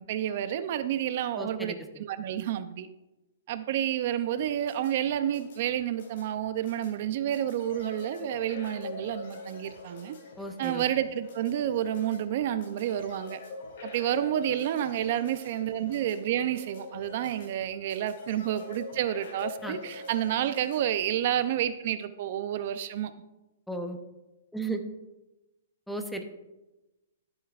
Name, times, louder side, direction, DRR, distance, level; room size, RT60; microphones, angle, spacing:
voice 1, 0.0-2.9 3.5-10.2 10.6-13.4 13.8-23.1, right 11 dB, 50° right, 12 dB, 0.5 m, -30 dB
voice 2, 1.4-1.8 10.4-10.8 19.6-19.8 23.7-24.0 24.5-24.8 25.9-26.2, right 2 dB, ahead, 5 dB, 0.7 m, -34 dB
sound 1, 4.4-20.8, left 3 dB, 60° left, 3.5 m, -44 dB
13.5 x 8.0 x 2.4 m, 1.0 s
hypercardioid pair, 155°, 0 cm